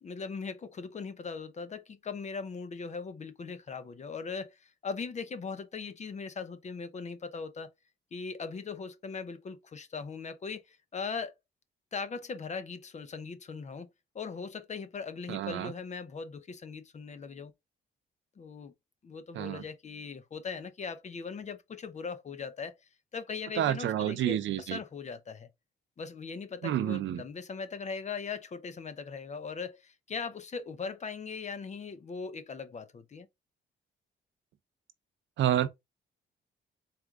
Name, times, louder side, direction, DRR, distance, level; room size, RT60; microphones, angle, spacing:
voice 1, 0.0-7.7 8.1-11.3 11.9-17.5 18.4-18.7 19.0-22.8 23.1-25.5 26.0-33.3, left 5 dB, 35° left, 0.7 m, -39 dB
voice 2, 15.3-15.7 19.3-19.6 23.6-24.8 26.6-27.2 35.4-35.7, right 11 dB, 70° right, 0.6 m, -29 dB
4.3 x 2.5 x 3.4 m
cardioid pair, 90°, 20 cm